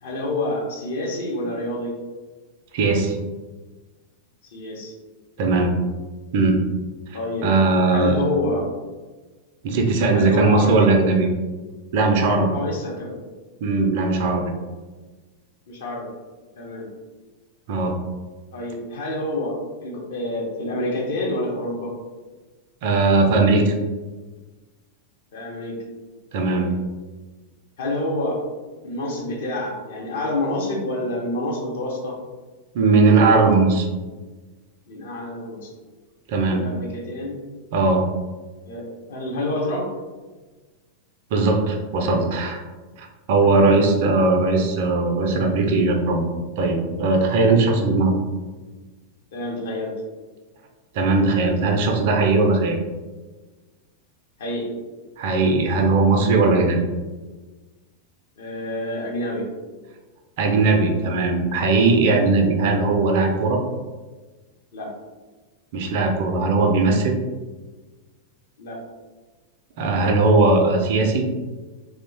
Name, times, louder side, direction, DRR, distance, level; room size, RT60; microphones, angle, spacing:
voice 1, 0.0-1.9 4.5-4.9 5.4-5.6 7.1-7.5 7.8-8.6 10.1-10.9 12.5-13.1 15.7-16.1 16.6-16.9 18.5-19.6 19.8-21.9 25.3-25.7 26.5-26.8 27.8-28.4 28.8-32.1 34.9-35.7 36.5-37.4 38.7-39.8 43.5-43.6 49.3-49.9 54.4-54.7 58.4-59.4 64.7-64.9 68.6-68.8, left 1 dB, 60° left, -2 dB, 0.7 m, -28 dB
voice 2, 2.7-3.2 5.4-5.7 6.3-6.6 7.1-8.2 9.6-11.3 11.9-12.6 13.6-14.5 17.7-18.0 22.8-23.7 26.3-26.7 32.7-33.9 36.3-36.6 37.7-38.0 41.3-42.6 43.0-46.2 46.6-48.1 50.9-52.8 55.2-56.8 60.4-63.6 65.7-67.2 69.8-71.3, right 3 dB, 50° right, 3 dB, 0.4 m, -19 dB
2.9 x 2.1 x 2.7 m, 1.3 s
figure-of-eight pair, 90°, 0 cm